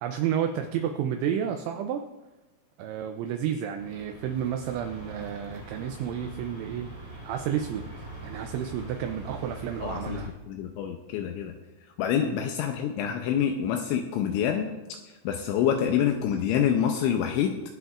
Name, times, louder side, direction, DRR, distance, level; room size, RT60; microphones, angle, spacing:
voice 1, 0.0-2.1 2.8-6.9 7.2-7.9 8.2-10.3 12.2-12.4, right 9 dB, 85° right, 6 dB, 2.7 m, -31 dB
sound 1, 3.8-10.3, right 2 dB, 50° right, 0.4 m, -42 dB
voice 2, 9.8-11.5 12.0-14.7 15.2-17.6, left 9 dB, 85° left, 4 dB, 2.7 m, -27 dB
23.0 x 7.9 x 2.5 m, 1.1 s
omnidirectional pair, 5.8 m